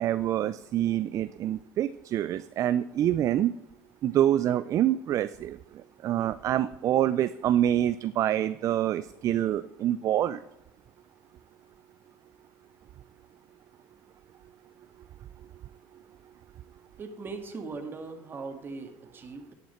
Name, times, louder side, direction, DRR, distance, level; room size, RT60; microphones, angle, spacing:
voice 1, 0.0-3.6 4.0-5.6 6.0-10.4, right 11 dB, 45° right, 14 dB, 0.4 m, -26 dB
voice 2, 17.0-19.5, right 4 dB, 30° right, 5 dB, 1.8 m, -39 dB
10.0 x 9.2 x 4.4 m, 0.88 s
cardioid pair, 115°, 8 cm